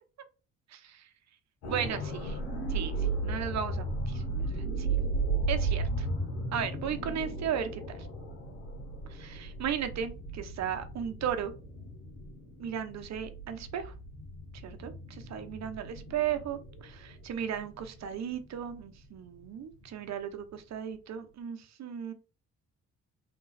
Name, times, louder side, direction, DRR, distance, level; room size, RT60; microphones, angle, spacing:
voice 1, 0.7-1.1 1.7-2.4 2.7-4.9 5.5-6.1 6.5-8.1 9.1-11.5 12.6-13.9 14.6-22.1, right 8 dB, 60° right, 7 dB, 0.8 m, -36 dB
sound 1, 1.6-19.5 19.9-20.1, right 3 dB, 90° left, 1.6 m, -35 dB
3.7 x 2.8 x 4.1 m, 0.33 s
cardioid pair, 90°, 30 cm